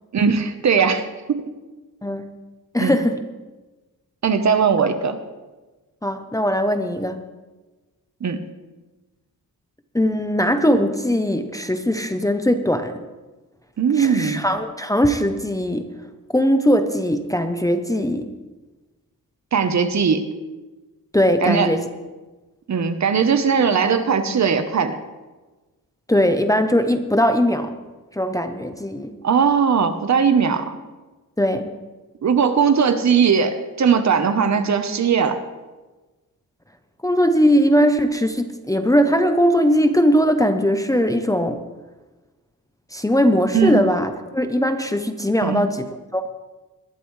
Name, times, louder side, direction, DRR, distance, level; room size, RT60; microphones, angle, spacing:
voice 1, 0.1-1.5 2.8-3.0 4.2-5.2 8.2-8.4 13.8-14.4 19.5-20.3 21.4-21.7 22.7-25.0 29.2-30.8 32.2-35.4 43.5-43.8 45.4-45.6, right 6 dB, 50° right, 9 dB, 0.9 m, -19 dB
voice 2, 2.7-3.2 6.0-7.2 9.9-12.9 14.0-15.9 16.3-18.3 21.1-21.8 26.1-27.7 28.1-29.1 31.4-31.7 37.0-41.6 42.9-46.3, equal, 10° left, 7 dB, 0.6 m, -20 dB
21.0 x 11.5 x 3.2 m, 1.2 s
wide cardioid pair, 165°, 35 cm